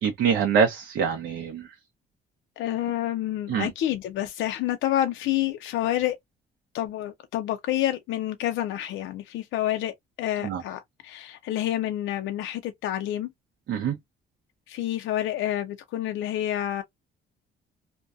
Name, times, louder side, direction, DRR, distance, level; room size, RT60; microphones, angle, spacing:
voice 1, 0.0-1.6 3.5-3.7 10.4-10.6 13.7-13.9, right 7 dB, 70° right, 0.6 m, -24 dB
voice 2, 2.6-6.2 6.7-13.3 14.7-16.8, left 12 dB, 80° left, 0.4 m, -28 dB
2.5 x 2.1 x 2.2 m
cardioid pair, 90°, 20 cm